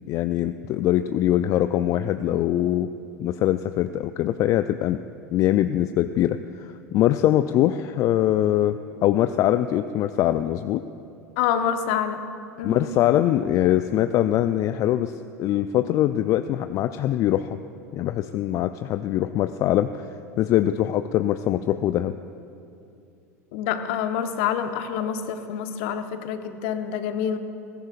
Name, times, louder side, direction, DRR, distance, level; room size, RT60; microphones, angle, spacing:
voice 1, 0.1-2.9 3.2-5.0 5.3-10.8 12.6-15.1 15.4-17.6 17.9-20.1 20.4-22.1, left 12 dB, 40° left, 10 dB, 0.4 m, -22 dB
voice 2, 11.4-12.2 12.6-12.8 23.5-27.4, left 8 dB, 55° left, 8 dB, 1.0 m, -27 dB
21.0 x 16.0 x 2.5 m, 2.6 s
figure-of-eight pair, 80°, 9 cm